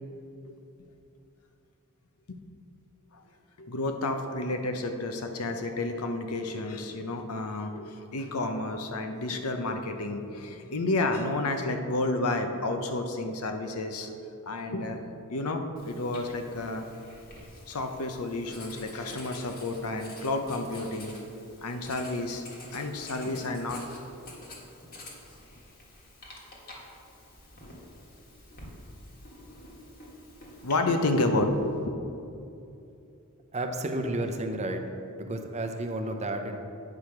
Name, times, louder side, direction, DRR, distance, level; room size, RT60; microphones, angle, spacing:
voice 1, 3.6-14.1 14.5-16.9 17.7-21.1 21.6-22.4 22.7-23.8 30.6-32.0, left 2 dB, 80° left, 6 dB, 0.7 m, -30 dB
Writing, 15.8-30.8, left 1 dB, 45° left, 1.6 m, -48 dB
voice 2, 33.5-34.8 35.2-36.6, right 1 dB, 30° right, 5 dB, 0.7 m, -31 dB
8.8 x 4.8 x 5.9 m, 2.7 s
head